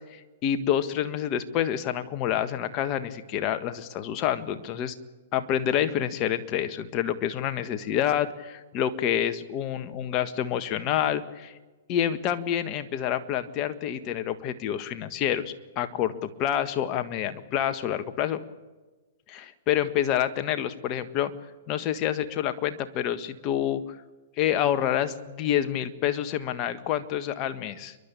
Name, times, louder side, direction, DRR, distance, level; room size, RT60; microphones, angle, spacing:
voice 1, 0.0-4.9 5.3-11.5 11.9-18.4 19.3-21.3 21.7-23.8 24.4-27.9, left 10 dB, 35° left, 9 dB, 1.6 m, -28 dB
29.0 x 12.5 x 8.6 m, 1.2 s
hypercardioid pair, 125°, 0 cm